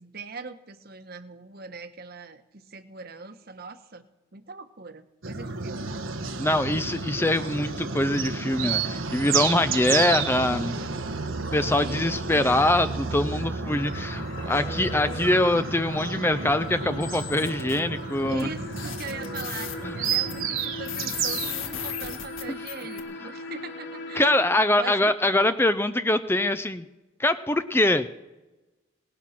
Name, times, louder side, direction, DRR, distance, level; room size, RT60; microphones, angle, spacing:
voice 1, 0.0-4.0 4.3-5.9 11.8-12.2 18.3-24.3 24.8-25.0, right 4 dB, 50° right, 8 dB, 1.2 m, -41 dB
sound 1, 5.2-21.9, right 5 dB, 85° right, 1.3 m, -31 dB
voice 2, 6.4-10.7 11.5-18.5 19.8-19.9 24.1-26.8 27.2-28.1, left 1 dB, 10° left, 11 dB, 0.5 m, -23 dB
sound 2, 13.7-24.6, left 2 dB, 60° left, 3.1 m, -40 dB
sound 3, 17.0-17.8 18.4-18.5 18.7-23.0, left 9 dB, 85° left, 1.9 m, -36 dB
18.5 x 12.0 x 5.9 m, 1.1 s
head